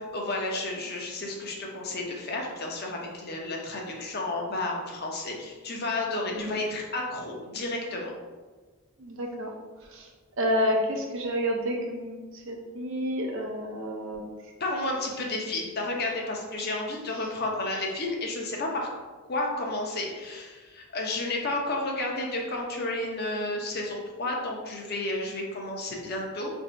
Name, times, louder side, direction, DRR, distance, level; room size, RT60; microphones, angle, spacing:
voice 1, 0.1-8.1 14.6-18.9 19.3-26.5, left 2 dB, 45° left, 0 dB, 0.6 m, -31 dB
voice 2, 9.0-9.5 10.0-10.1 10.4-12.2 12.5-14.3, equal, 55° right, 1 dB, 0.6 m, -29 dB
2.9 x 2.6 x 4.4 m, 1.3 s
head